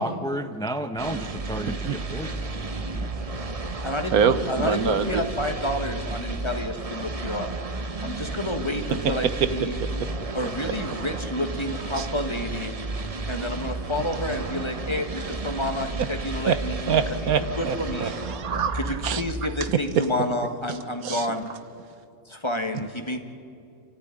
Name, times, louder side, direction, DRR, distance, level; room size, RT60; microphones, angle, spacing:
voice 1, 0.0-2.5 2.9-3.2, right 1 dB, 5° left, 8 dB, 0.6 m, -32 dB
sound 1, 1.0-20.0, right 3 dB, 30° right, 0.9 m, -33 dB
voice 2, 1.6-2.0 4.1-5.2 9.0-9.1 9.4-9.5 9.8-10.1 11.9-12.1 16.0-16.1 16.4-16.6 16.9-19.2 19.6-20.1 20.7-20.8 21.0-21.3 22.7-22.8, right 7 dB, 80° right, 12 dB, 1.5 m, -25 dB
voice 3, 3.8-7.5 8.0-9.8 10.3-12.7 13.3-17.0 17.6-18.1 18.8-21.5 22.3-23.2, left 1 dB, 20° left, 5 dB, 1.7 m, -29 dB
28.5 x 14.0 x 9.8 m, 2.5 s
omnidirectional pair, 1.5 m